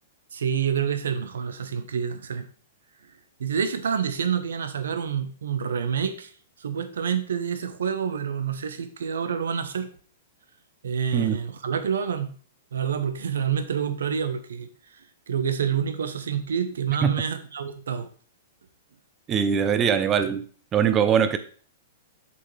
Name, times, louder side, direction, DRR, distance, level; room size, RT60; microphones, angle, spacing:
voice 1, 0.3-2.5 3.4-6.3 6.6-9.9 10.8-12.3 12.7-14.7 15.3-18.1, right 7 dB, 90° right, 10 dB, 0.9 m, -27 dB
voice 2, 19.3-20.4 20.7-21.4, right 7 dB, 20° right, 10 dB, 0.6 m, -22 dB
6.8 x 5.6 x 3.3 m, 0.44 s
hypercardioid pair, 145°, 0 cm